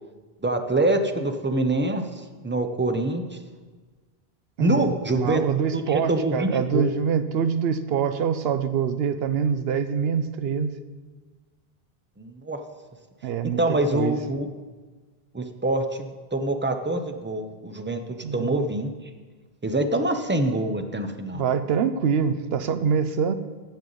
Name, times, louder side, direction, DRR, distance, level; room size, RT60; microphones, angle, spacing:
voice 1, 0.4-3.4 4.6-5.4 5.7-6.8 12.2-12.6 13.4-14.5 15.3-18.9 19.6-21.4, right 1 dB, 15° right, 6 dB, 0.5 m, -25 dB
voice 2, 4.6-4.9 5.2-10.7 13.2-14.2 18.2-18.7 21.3-23.3, right 7 dB, 75° right, 11 dB, 0.8 m, -25 dB
13.5 x 7.5 x 3.9 m, 1.4 s
omnidirectional pair, 1.1 m